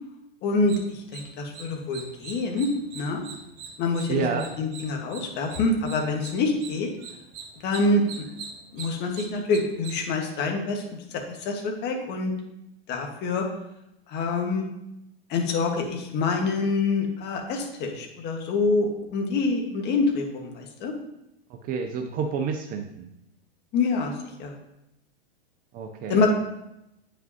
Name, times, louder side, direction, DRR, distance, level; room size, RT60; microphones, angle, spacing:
voice 1, 0.4-2.7 2.9-3.2 3.8-6.9 7.6-8.2 8.7-10.8 11.1-12.3 12.9-13.4 14.1-14.6 15.3-20.9 23.7-24.1 24.4-24.5 26.1-26.3, left 3 dB, 35° left, 2 dB, 1.5 m, -26 dB
sound 1, 0.7-10.0, right 5 dB, 45° right, 1.1 m, -43 dB
voice 2, 4.1-4.5 21.5-23.1 25.7-26.2, right 5 dB, 30° right, 6 dB, 0.6 m, -29 dB
9.0 x 5.2 x 2.8 m, 0.87 s
hypercardioid pair, 115°, 31 cm